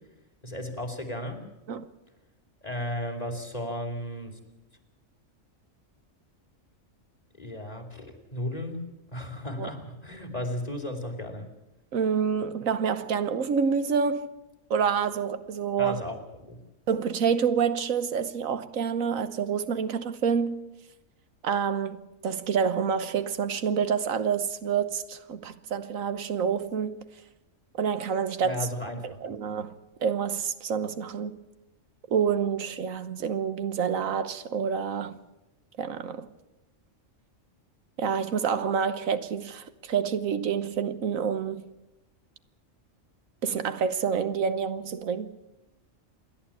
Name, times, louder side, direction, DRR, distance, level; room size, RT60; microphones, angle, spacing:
voice 1, 0.4-1.4 2.6-4.3 7.4-8.8 9.1-11.5 15.8-16.2 16.4-16.6 28.4-29.2, left 1 dB, 30° left, 2.8 m, -34 dB
voice 2, 11.9-14.3 14.7-16.0 16.9-20.6 21.4-27.1 27.8-28.7 29.0-31.4 32.1-35.2 35.8-36.3 38.0-41.7 43.4-45.3, right 7 dB, 85° right, 1.4 m, -28 dB
28.0 x 11.5 x 8.5 m
omnidirectional pair, 1.4 m